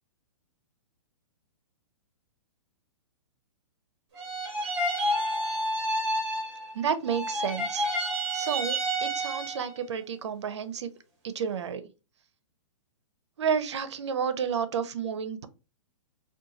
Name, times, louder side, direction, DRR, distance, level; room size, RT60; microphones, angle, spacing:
sound 1, 4.1-6.8 7.0-9.8, right 1 dB, 15° right, 0.7 m, -30 dB
voice 1, 6.7-7.8 8.3-10.9 11.2-11.8 13.4-15.5, right 7 dB, 60° right, 0.4 m, -31 dB
2.8 x 2.2 x 3.7 m
hypercardioid pair, 180°, 17 cm